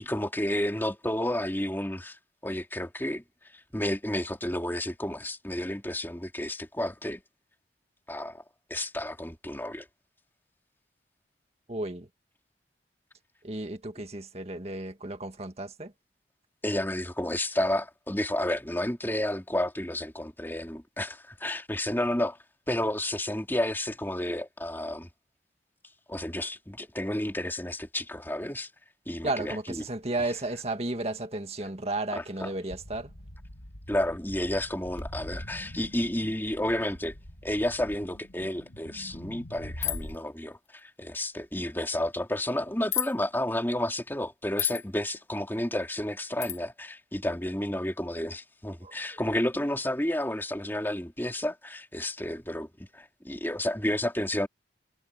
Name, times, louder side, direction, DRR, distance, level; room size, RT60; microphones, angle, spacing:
voice 1, 0.0-3.2 3.5-7.2 8.1-8.4 8.7-9.9 16.6-22.4 22.7-25.1 26.1-28.7 29.1-29.8 30.2-30.3 32.1-32.5 33.9-37.1 37.4-54.5, left 1 dB, 10° left, 3.2 m, -31 dB
voice 2, 11.7-12.1 13.4-15.9 29.2-33.1 48.8-49.2, right 2 dB, 35° right, 1.9 m, -33 dB
sound 1, 32.7-40.2, equal, 90° left, 3.1 m, -44 dB
sound 2, 39.8-40.2 42.9-43.1 44.6-44.8 46.4-46.6, left 11 dB, 40° left, 1.3 m, -29 dB
head